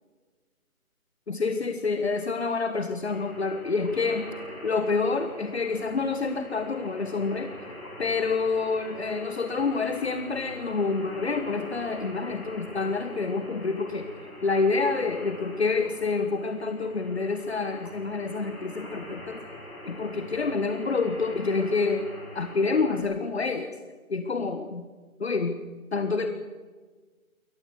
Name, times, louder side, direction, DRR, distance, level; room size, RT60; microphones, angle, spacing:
voice 1, 1.3-7.5 8.0-14.1 14.4-19.4 19.8-22.1 22.3-23.7 24.1-24.8 25.2-25.6 25.9-26.3, left 4 dB, 45° left, 7 dB, 1.5 m, -28 dB
sound 1, 3.0-23.0, left 1 dB, 5° left, 7.8 m, -43 dB
22.5 x 19.0 x 6.6 m, 1.4 s
figure-of-eight pair, 175°, 43 cm